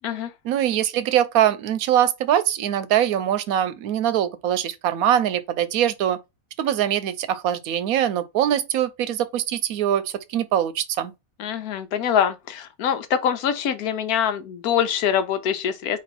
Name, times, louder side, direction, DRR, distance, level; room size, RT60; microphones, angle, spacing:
voice 1, 0.4-6.2 6.6-11.1, right 10 dB, 80° right, 1.0 m, -22 dB
voice 2, 11.4-16.0, left 8 dB, 90° left, 1.2 m, -24 dB
4.2 x 3.0 x 4.1 m
omnidirectional pair, 1.5 m